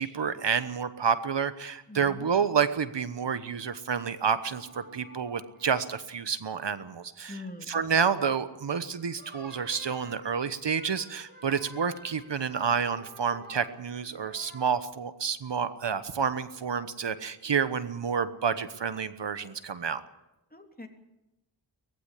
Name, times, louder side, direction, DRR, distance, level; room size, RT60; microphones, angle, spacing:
voice 1, 0.0-7.4 7.7-20.0, right 6 dB, 65° right, 13 dB, 1.1 m, -29 dB
voice 2, 1.9-2.3 7.3-7.8 20.5-20.9, left 2 dB, 20° left, 4 dB, 3.2 m, -43 dB
sound 1, 4.3-5.6 6.7-7.0 8.9-14.7, right 2 dB, 20° right, 5.1 m, -50 dB
19.0 x 15.5 x 9.9 m, 0.94 s
wide cardioid pair, 60°, 45 cm